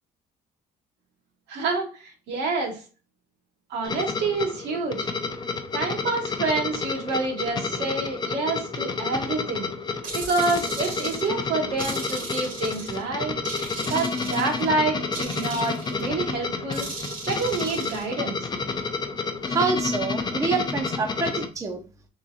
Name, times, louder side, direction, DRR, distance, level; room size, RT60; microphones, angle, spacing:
voice 1, 1.5-2.8 3.7-5.1 5.7-9.7 10.1-13.3 13.9-16.9 17.3-18.5, right 3 dB, 80° right, 0 dB, 1.4 m, -27 dB
sound 1, 3.8-21.5, left 4 dB, 25° left, 0.5 m, -30 dB
sound 2, 10.0-11.3 11.8-13.0 13.5-14.7 15.1-16.1 16.7-18.1, right 4 dB, 55° right, 1.1 m, -37 dB
voice 2, 19.4-21.8, right 4 dB, 20° right, 4 dB, 0.6 m, -26 dB
3.7 x 3.0 x 2.6 m, 0.35 s
cardioid pair, 110°, 17 cm